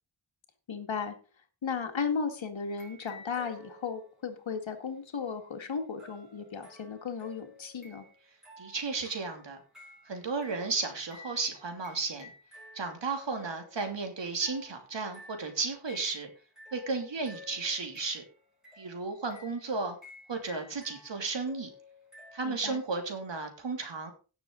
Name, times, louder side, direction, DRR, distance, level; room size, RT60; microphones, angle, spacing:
voice 1, 0.7-1.2 1.6-8.1 22.4-22.8, left 5 dB, 85° left, 6 dB, 2.0 m, -35 dB
sound 1, 2.7-4.3 6.0-22.4, left 2 dB, ahead, 6.7 m, -53 dB
voice 2, 8.6-9.6 10.1-12.3 12.7-16.3 16.7-18.2 18.8-20.0 20.3-21.7 22.3-24.1, right 4 dB, 70° right, 4 dB, 2.9 m, -34 dB
17.0 x 6.9 x 3.9 m, 0.35 s
wide cardioid pair, 120°, 45 cm